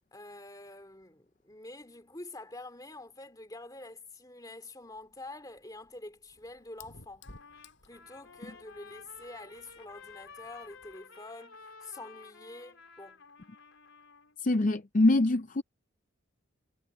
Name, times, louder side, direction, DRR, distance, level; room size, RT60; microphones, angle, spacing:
voice 1, 0.1-7.3 7.8-13.3, left 2 dB, 20° left, 2.6 m, -47 dB
Fire, 4.8-11.0, left 3 dB, 60° left, 6.3 m, -58 dB
Trumpet, 7.2-14.3, left 5 dB, 85° left, 4.1 m, -52 dB
voice 2, 14.4-15.6, left 2 dB, 40° left, 0.5 m, -24 dB
head